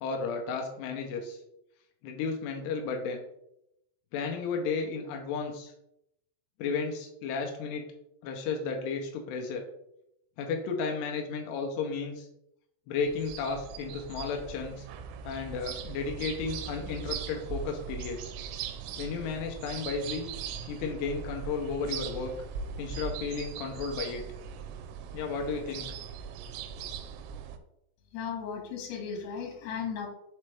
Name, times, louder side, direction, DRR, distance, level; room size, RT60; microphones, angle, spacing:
voice 1, 0.0-1.4 2.0-3.2 4.1-5.7 6.6-7.8 8.2-9.6 10.4-12.3 12.9-14.9 15.3-18.4 19.0-20.3 20.7-22.3 22.8-24.2 25.1-25.9, left 5 dB, 90° left, 2 dB, 2.4 m, -33 dB
sound 1, 13.0-27.6, right 7 dB, 85° right, 2.7 m, -40 dB
voice 2, 28.1-30.1, left 6 dB, 65° left, 0 dB, 3.0 m, -36 dB
7.2 x 4.3 x 3.3 m, 0.80 s
omnidirectional pair, 5.8 m